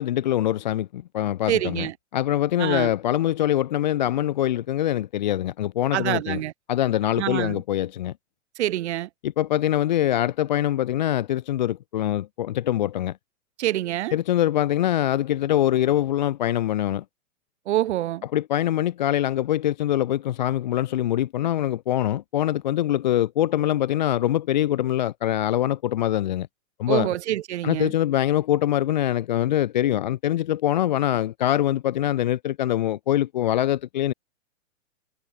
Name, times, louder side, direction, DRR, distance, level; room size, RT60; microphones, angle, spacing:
voice 1, 0.0-6.4 6.7-8.1 9.2-13.2 14.1-17.0 18.3-26.5 26.8-27.1 27.6-34.1, left 12 dB, 35° left, 0.5 m, -24 dB
voice 2, 1.5-1.9 2.6-2.9 5.9-6.5 7.2-7.6 8.6-9.1 13.6-14.1 17.7-18.2 26.9-27.9, right 14 dB, 55° right, 0.7 m, -26 dB
hypercardioid pair, 165°, 42 cm